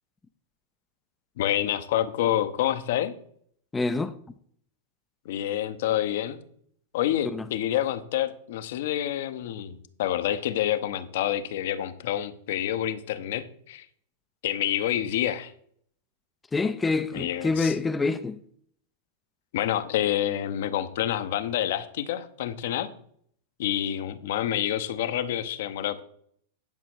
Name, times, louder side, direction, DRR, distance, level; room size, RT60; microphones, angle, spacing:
voice 1, 1.4-3.1 5.2-6.4 6.9-13.8 14.4-15.5 17.1-17.7 19.5-22.9 23.6-26.0, left 11 dB, 60° left, 0.9 m, -28 dB
voice 2, 3.7-4.1 7.2-7.5 16.5-18.4, left 3 dB, 15° left, 0.6 m, -26 dB
10.5 x 6.2 x 4.6 m
hypercardioid pair, 100°, 0 cm